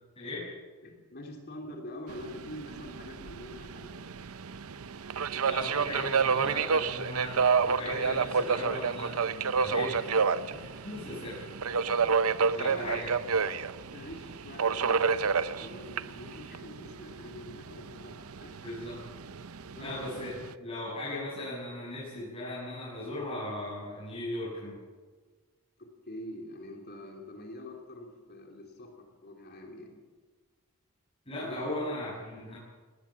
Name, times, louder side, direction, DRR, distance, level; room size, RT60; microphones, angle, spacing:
voice 1, 0.8-4.3 12.6-12.8 13.9-18.6 19.7-19.9 25.8-30.0 31.4-31.6, left 1 dB, 45° left, 2 dB, 3.4 m, -45 dB
Subway metro underground, 2.1-20.5, right 5 dB, 70° right, 0.7 m, -30 dB
voice 2, 5.4-11.5 12.5-13.1 13.4-13.5 18.6-19.0 19.8-24.8 31.3-32.6, left 1 dB, 25° left, -8 dB, 7.5 m, -38 dB
19.5 x 18.5 x 7.4 m, 1.4 s
head